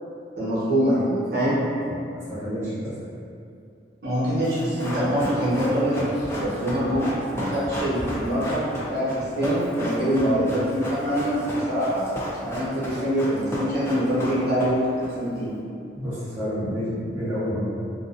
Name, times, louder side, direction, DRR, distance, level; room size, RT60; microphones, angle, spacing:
voice 1, 0.4-1.6 4.0-12.0 12.4-14.8 15.1-15.5, equal, 60° right, -10 dB, 0.9 m, -24 dB
voice 2, 2.3-2.9 10.2-10.5 12.9-13.0 16.0-17.6, equal, 10° right, -16 dB, 1.0 m, -29 dB
Run, 4.4-15.1 15.3-15.4, equal, 15° left, 0.3 m, -33 dB
2.4 x 2.1 x 2.4 m, 2.5 s
head